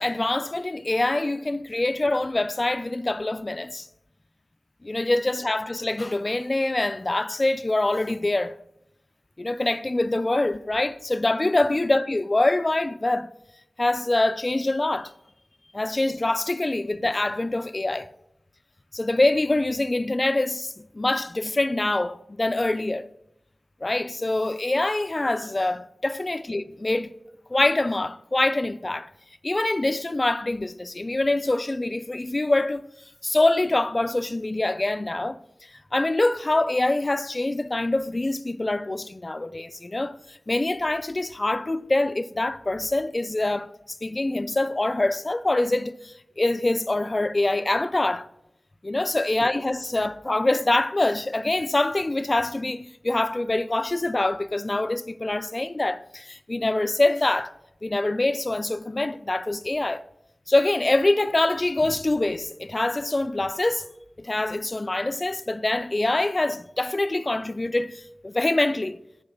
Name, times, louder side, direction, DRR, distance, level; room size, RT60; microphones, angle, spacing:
voice 1, 0.0-3.9 4.8-8.6 9.4-13.3 13.8-15.1 15.7-18.1 18.9-23.1 23.8-27.1 27.5-29.1 29.4-32.8 33.2-35.4 35.9-48.3 48.8-57.5 57.8-60.0 60.5-63.9 64.2-69.0, left 2 dB, 40° left, 0.4 m, -25 dB
7.0 x 4.8 x 5.8 m
wide cardioid pair, 45°, 0 cm